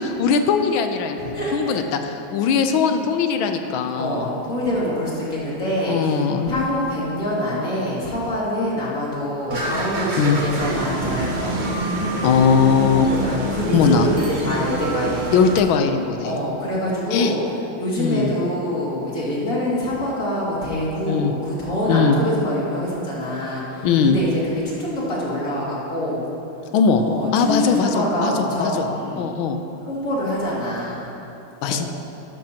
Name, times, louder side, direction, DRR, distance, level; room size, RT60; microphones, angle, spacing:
voice 1, 0.0-1.2 1.5-4.3 5.9-6.5 10.2-10.4 12.2-13.1 13.7-14.1 15.3-16.3 17.1-17.3 18.0-18.3 21.0-21.3 21.9-22.2 23.8-24.2 26.7-27.0 27.3-28.9 29.2-29.6 31.6-31.8, left 6 dB, 85° left, 7 dB, 1.5 m, -20 dB
voice 2, 1.2-1.8 3.9-11.7 12.9-15.2 16.2-17.4 17.8-26.2 27.0-29.3 29.9-31.1 31.6-31.9, equal, 45° left, -7 dB, 2.8 m, -25 dB
sound 1, 9.5-15.6, right 2 dB, 85° right, 0.4 m, -26 dB
13.0 x 12.0 x 2.9 m, 2.9 s
omnidirectional pair, 2.2 m